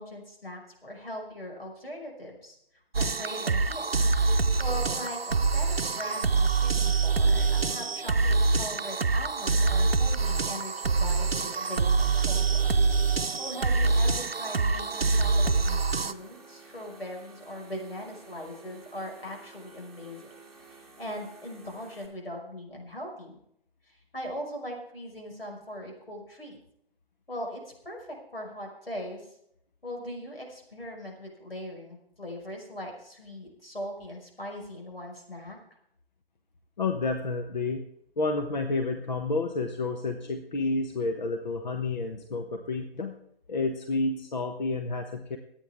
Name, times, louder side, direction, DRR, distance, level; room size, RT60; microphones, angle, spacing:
voice 1, 0.0-2.6 3.0-3.9 4.6-12.6 13.4-20.3 20.7-23.4 23.8-26.6 27.3-29.3 29.8-35.6, equal, 75° left, 1 dB, 5.8 m, -40 dB
sound 1, 2.9-16.1, right 4 dB, 80° right, 0.8 m, -25 dB
sound 2, 11.2-22.1, right 4 dB, ahead, 1.7 m, -52 dB
voice 2, 36.8-37.8 38.2-43.2 43.5-45.4, left 3 dB, 50° left, 5 dB, 1.2 m, -30 dB
25.5 x 9.2 x 3.6 m, 0.74 s
figure-of-eight pair, 135°, 30 cm